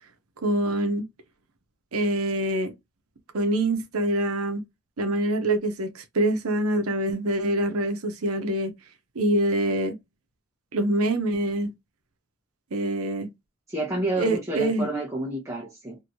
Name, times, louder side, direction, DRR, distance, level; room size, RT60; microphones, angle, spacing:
voice 1, 0.4-1.0 1.9-2.7 3.3-4.6 5.0-8.7 9.2-10.0 10.7-11.7 12.7-13.3 14.2-14.9, right 1 dB, 80° right, 0.7 m, -25 dB
voice 2, 13.7-16.0, right 2 dB, 15° right, 0.7 m, -29 dB
3.0 x 2.6 x 2.6 m
head